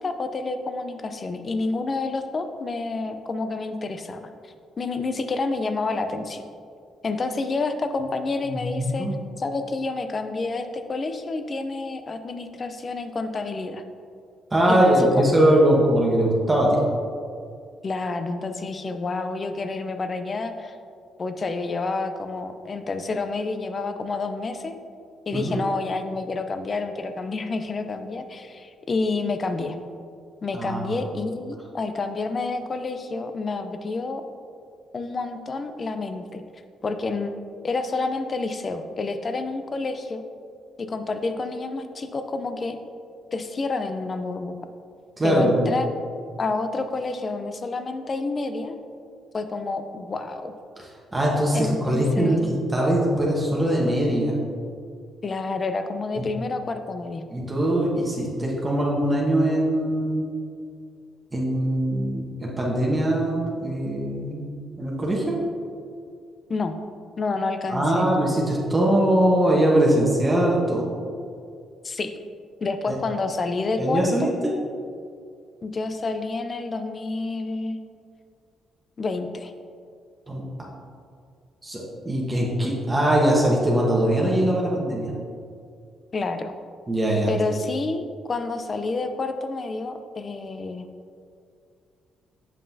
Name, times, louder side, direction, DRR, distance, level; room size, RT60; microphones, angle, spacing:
voice 1, 0.0-4.3 4.8-6.4 7.0-9.1 9.4-13.8 14.7-15.3 17.8-20.8 21.2-24.8 25.3-29.8 30.4-34.2 34.9-36.4 36.8-37.3 37.6-40.2 40.8-42.8 43.3-44.6 45.2-45.9 46.4-48.8 49.3-50.5 51.5-52.6 55.2-57.2 66.5-66.7 67.2-68.1 71.8-72.1 72.6-74.3 75.6-77.8 79.0-79.5 86.1-86.5 87.3-90.9, left 3 dB, 40° left, 8 dB, 0.5 m, -29 dB
voice 2, 8.5-9.1 14.5-16.8 25.3-25.6 30.5-30.9 45.2-45.7 51.1-54.3 56.2-56.3 57.3-60.2 61.3-64.5 64.8-65.4 67.7-70.9 72.9-73.0 73.8-74.5 80.3-80.4 81.6-85.1 86.9-87.3, right 1 dB, 20° right, -3 dB, 1.1 m, -21 dB
7.5 x 5.4 x 2.7 m, 2.3 s
cardioid pair, 90°, 0 cm